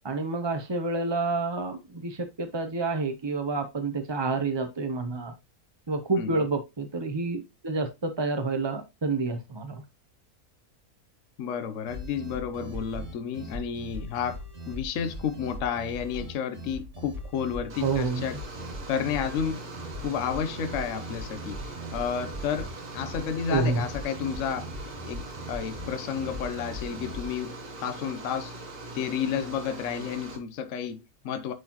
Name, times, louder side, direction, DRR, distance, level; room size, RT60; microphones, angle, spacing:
voice 1, 0.0-5.3 5.9-9.8 17.8-18.2 23.5-23.8, right 3 dB, 30° right, 0.5 m, -29 dB
voice 2, 11.4-18.4 18.9-19.6 20.0-24.7 25.1-28.5 28.9-31.5, left 7 dB, 60° left, 1.1 m, -31 dB
sound 1, 11.9-27.3, equal, 55° right, 1.9 m, -40 dB
sound 2, 17.7-30.4, right 2 dB, 85° right, 2.1 m, -41 dB
9.3 x 4.2 x 2.9 m
omnidirectional pair, 1.6 m